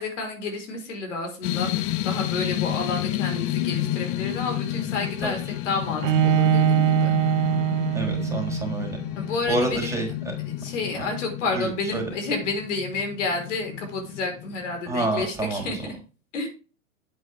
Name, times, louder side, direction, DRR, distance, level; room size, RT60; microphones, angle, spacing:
voice 1, 0.0-5.4 5.6-7.1 9.1-9.9 10.6-15.9 16.3-16.5, left 3 dB, 65° left, 4 dB, 4.7 m, -30 dB
sound 1, 1.4-14.8, left 14 dB, 40° left, 0.8 m, -31 dB
Bowed string instrument, 6.0-9.0, right 9 dB, 70° right, 1.3 m, -22 dB
voice 2, 7.9-9.0 9.5-10.3 11.0-11.1 11.5-12.1 14.9-15.7, right 2 dB, 5° right, 1 dB, 3.9 m, -28 dB
10.0 x 8.5 x 3.6 m, 0.35 s
hypercardioid pair, 110°, 38 cm